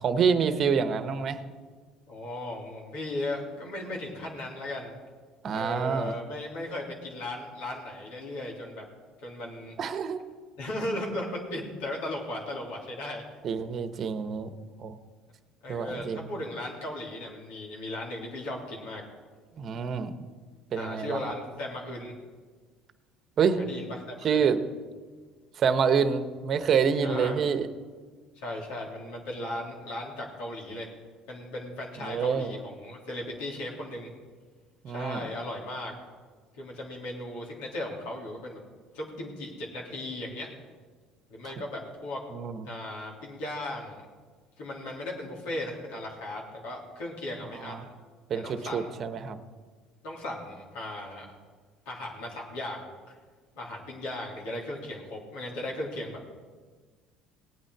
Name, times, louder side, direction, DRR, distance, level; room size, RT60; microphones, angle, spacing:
voice 1, 0.0-1.4 5.4-6.2 9.8-10.2 13.4-14.5 14.8-15.0 15.7-16.3 19.6-20.1 20.7-21.2 23.4-23.6 24.2-24.6 25.6-27.7 32.0-32.5 34.8-35.3 42.3-42.6 47.6-47.8 48.3-49.4, right 6 dB, 50° right, 10 dB, 1.0 m, -27 dB
voice 2, 2.1-4.9 5.5-8.8 9.2-9.8 10.6-13.2 15.6-19.0 19.5-19.6 20.8-22.1 23.6-24.5 27.0-27.4 28.3-30.9 31.3-34.1 34.9-35.9 36.5-38.6 38.9-40.5 41.3-42.2 42.6-44.0 44.6-47.9 48.3-49.0 50.0-51.2 51.8-53.1 53.5-56.2, left 1 dB, 80° left, -3 dB, 3.3 m, -37 dB
18.5 x 9.0 x 4.8 m, 1.5 s
supercardioid pair, 85°, 0 cm